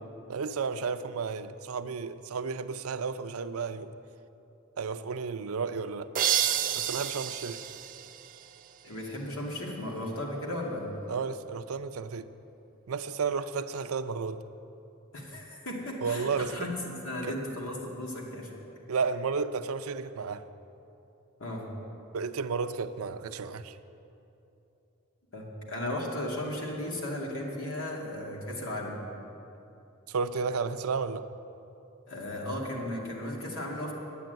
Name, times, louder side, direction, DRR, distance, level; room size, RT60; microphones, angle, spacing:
voice 1, 0.3-3.9 4.8-6.1 6.7-7.6 11.1-12.3 12.9-14.4 16.0-16.7 17.2-17.4 18.9-20.4 22.1-23.8 30.1-31.3, right 5 dB, 90° right, 11 dB, 0.5 m, -32 dB
sound 1, 6.1-8.9, right 10 dB, 40° right, 0.4 m, -30 dB
voice 2, 8.8-10.9 15.1-18.5 21.4-21.6 25.3-29.0 32.1-33.9, left 1 dB, 75° left, -2 dB, 2.4 m, -35 dB
10.0 x 8.8 x 9.2 m, 2.9 s
head